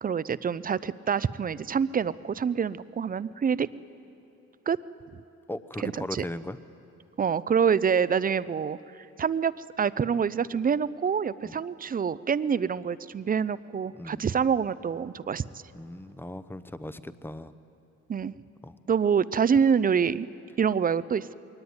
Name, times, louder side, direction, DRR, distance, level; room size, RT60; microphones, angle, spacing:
voice 1, 0.0-3.7 4.7-4.8 5.8-6.2 7.2-8.8 9.2-15.4 18.1-18.3 18.9-20.3 20.6-21.3, right 7 dB, 30° right, 17 dB, 0.5 m, -26 dB
voice 2, 5.5-6.6 11.4-11.6 13.9-14.3 15.7-17.5 18.6-18.8, left 1 dB, 5° left, 14 dB, 0.7 m, -38 dB
21.5 x 17.5 x 9.6 m, 2.9 s
cardioid pair, 90°, 30 cm